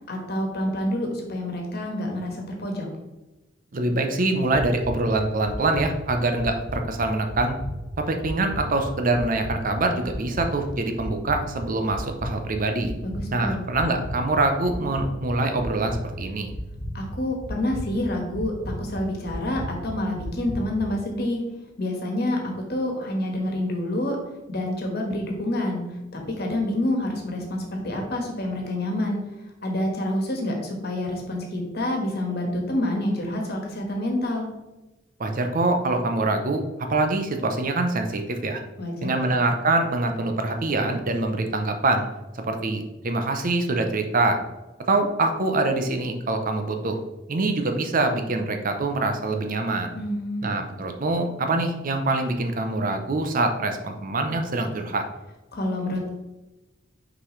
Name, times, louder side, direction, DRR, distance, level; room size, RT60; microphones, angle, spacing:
voice 1, 0.1-2.9 13.0-13.6 16.9-18.5 18.8-21.4 21.8-24.2 24.5-25.8 26.1-29.2 29.6-34.5 38.8-39.2 49.9-50.5 55.5-56.1, left 1 dB, 55° left, 1 dB, 1.4 m, -27 dB
voice 2, 3.7-7.6 8.0-12.9 13.3-16.5 35.2-36.6 36.9-38.6 39.0-42.1 42.3-44.4 44.9-47.0 47.3-49.9 50.4-55.0, right 2 dB, 45° right, 5 dB, 0.7 m, -24 dB
sound 1, 4.5-21.0, equal, 15° left, 1.2 m, -35 dB
6.0 x 5.0 x 3.2 m, 1.1 s
head